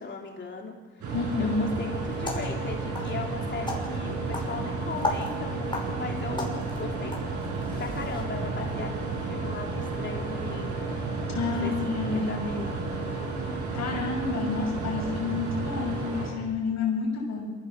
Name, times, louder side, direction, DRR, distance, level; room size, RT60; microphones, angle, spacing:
voice 1, 0.0-1.1 1.4-7.1 7.8-10.8 11.4-11.7 12.1-12.7, left 3 dB, 40° left, 0 dB, 3.4 m, -38 dB
sound 1, 1.0-16.3, right 3 dB, 70° right, 6.3 m, -32 dB
voice 2, 1.1-1.6 11.3-12.5 13.7-17.5, left 4 dB, 65° left, -1 dB, 6.6 m, -29 dB
sound 2, 2.1-8.2, left 2 dB, 15° left, 6.2 m, -37 dB
27.0 x 15.0 x 7.3 m, 1.5 s
cardioid pair, 90°, 30 cm